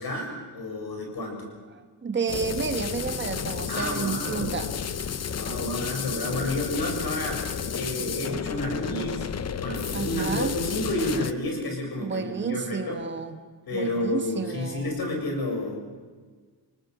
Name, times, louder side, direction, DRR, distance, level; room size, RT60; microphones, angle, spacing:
voice 1, 0.0-1.5 3.7-4.6 5.3-7.4 7.7-9.3 9.6-13.0 13.7-15.8, left 1 dB, 50° left, 1 dB, 7.1 m, -30 dB
voice 2, 1.7-4.7 8.5-8.7 9.9-10.6 12.0-13.3 13.7-14.9, right 5 dB, 25° right, 7 dB, 1.3 m, -31 dB
sound 1, 2.3-11.3, left 7 dB, 35° left, 0.8 m, -32 dB
27.0 x 18.5 x 8.1 m, 1.5 s
wide cardioid pair, 170°, 46 cm